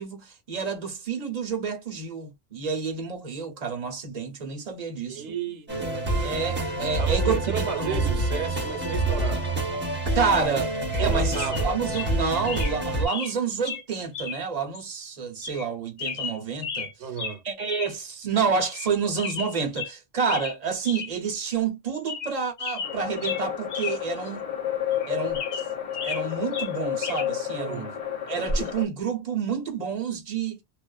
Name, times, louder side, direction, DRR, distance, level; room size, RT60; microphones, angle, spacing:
voice 1, 0.0-5.3 6.2-8.2 10.1-10.7 11.0-17.1 17.4-24.5 25.1-25.6 26.0-27.9 28.3-30.6, right 5 dB, 40° right, 0.8 m, -29 dB
voice 2, 5.1-6.0 7.0-9.5 11.0-11.7 17.0-17.4 27.6-28.0, right 7 dB, 85° right, 1.0 m, -33 dB
sound 1, 5.7-13.1, right 2 dB, 10° right, 0.9 m, -27 dB
sound 2, 10.9-11.1 11.3-11.7 11.9-12.1 12.5-12.8 13.1-13.3 13.7-13.8 14.1-14.4 14.7-14.8 15.4-15.7 16.0-16.9 17.2-17.4 17.7-17.9 18.2-18.3 18.7-18.9 19.2-19.9 20.3-20.6 20.8-21.1 21.5-21.6 21.9-22.3 22.6-24.0 24.3-24.4 24.9-26.2 26.5-27.3 28.5-28.7, left 4 dB, 75° left, 1.0 m, -33 dB
sound 3, 22.8-28.8, left 10 dB, 45° left, 0.5 m, -31 dB
2.5 x 2.3 x 2.2 m
omnidirectional pair, 1.1 m